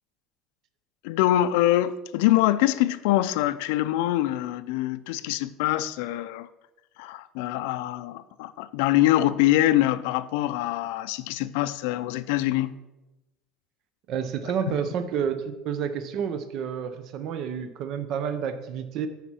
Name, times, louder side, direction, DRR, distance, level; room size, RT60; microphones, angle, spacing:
voice 1, 1.0-6.5 7.0-12.8 14.7-14.8, left 14 dB, 80° left, 0.4 m, -24 dB
voice 2, 14.1-19.1, right 7 dB, 45° right, 0.7 m, -30 dB
9.1 x 5.5 x 4.3 m
cardioid pair, 165°, 0 cm